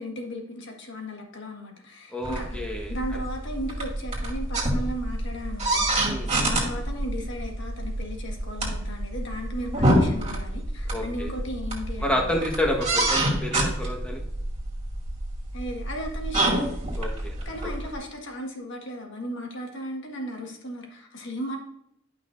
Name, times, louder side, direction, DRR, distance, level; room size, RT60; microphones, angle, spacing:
voice 1, 0.0-2.6 2.9-12.4 15.5-16.6 17.4-21.6, equal, 65° left, 2 dB, 1.6 m, -36 dB
voice 2, 2.1-2.9 6.1-6.3 10.9-11.3 12.0-14.2 17.0-17.3, left 1 dB, 5° left, 0 dB, 1.4 m, -29 dB
sound 1, 2.2-17.9, right 1 dB, 35° right, 2.4 m, -27 dB
12.0 x 5.6 x 2.6 m, 0.77 s
head